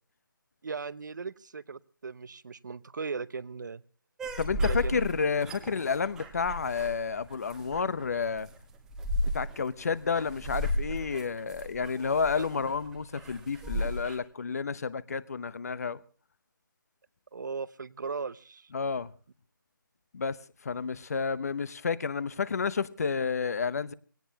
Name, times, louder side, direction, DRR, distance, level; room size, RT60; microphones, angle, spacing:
voice 1, 0.6-3.8 4.6-5.0 12.4-12.5 17.3-18.7, right 5 dB, 55° right, 0.7 m, -38 dB
sound 1, 4.2-14.2, equal, 5° right, 1.0 m, -35 dB
voice 2, 4.4-8.5 9.3-16.0 18.7-19.1 20.1-20.4 20.6-23.9, left 5 dB, 45° left, 0.8 m, -30 dB
20.5 x 17.5 x 2.8 m
figure-of-eight pair, 165°, 12 cm